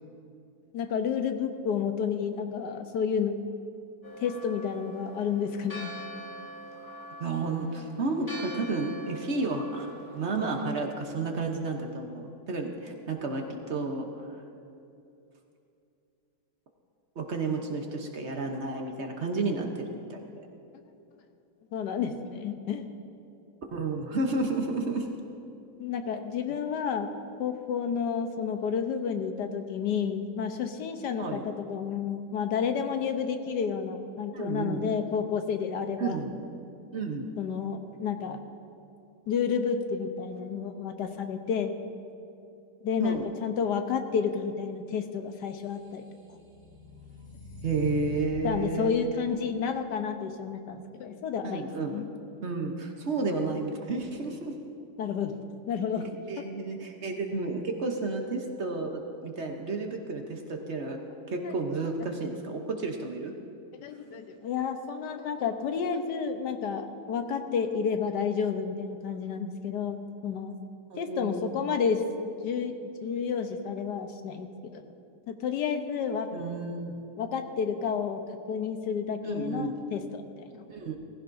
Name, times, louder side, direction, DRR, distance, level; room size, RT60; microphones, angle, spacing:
voice 1, 0.7-3.4 4.2-5.9 21.7-22.8 25.8-27.1 27.4-36.2 37.4-38.4 39.3-41.8 42.8-46.0 48.4-51.6 51.9-52.1 55.0-55.3 55.7-56.1 56.4-56.5 61.4-61.6 63.8-70.6 71.0-72.7 73.0-74.8 75.3-76.3 77.2-78.2 78.5-80.2 80.5-80.7, left 6 dB, 90° left, 7 dB, 1.4 m, -30 dB
Church bell, 4.0-10.7, right 1 dB, 10° left, 1.6 m, -43 dB
voice 2, 7.2-14.4 17.2-20.5 23.7-25.1 31.2-31.4 34.3-34.9 36.0-36.3 36.9-37.3 43.0-43.3 47.6-48.9 51.4-52.1 52.4-54.6 56.3-61.0 61.3-63.3 70.9-71.6 76.3-77.0 79.2-79.8 80.7-81.0, right 3 dB, 50° right, 3 dB, 1.1 m, -32 dB
sound 1, 45.7-48.5, equal, 80° right, 2.8 m, -45 dB
18.5 x 15.5 x 2.6 m, 2.6 s
omnidirectional pair, 1.8 m